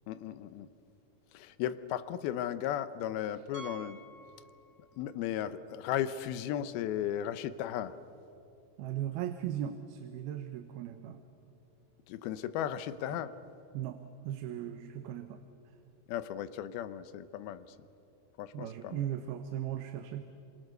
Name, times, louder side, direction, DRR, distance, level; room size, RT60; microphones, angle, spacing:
voice 1, 0.1-0.7 1.3-4.0 5.0-8.0 12.1-13.4 16.1-17.7 18.4-19.0, left 11 dB, 90° left, 13 dB, 2.8 m, -35 dB
Piano, 3.5-5.1 5.4-5.6 6.1-6.2 6.5-6.6 8.7-8.8, right 4 dB, 60° right, 1.4 m, -50 dB
voice 2, 8.8-11.2 13.7-14.0 14.2-15.4 18.5-20.3, right 11 dB, 90° right, 8 dB, 2.9 m, -37 dB
28.5 x 26.0 x 6.7 m, 2.7 s
omnidirectional pair, 4.3 m